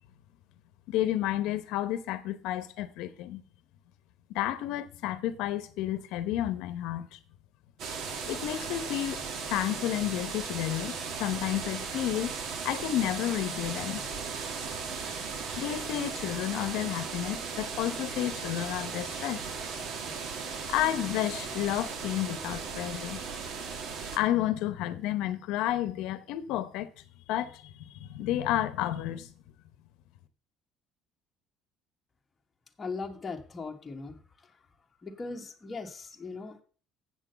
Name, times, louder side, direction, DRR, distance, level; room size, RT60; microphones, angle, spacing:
voice 1, 0.9-3.4 4.3-7.2 8.3-12.4 12.6-14.0 15.6-19.4 20.7-23.2 24.1-26.9 27.3-29.3, left 13 dB, 85° left, 0.8 m, -31 dB
sound 1, 7.8-24.2, right 5 dB, 55° right, 1.5 m, -37 dB
voice 2, 32.8-34.5 35.0-36.6, left 4 dB, 20° left, 1.3 m, -39 dB
7.7 x 6.1 x 7.9 m
cardioid pair, 140°, 0 cm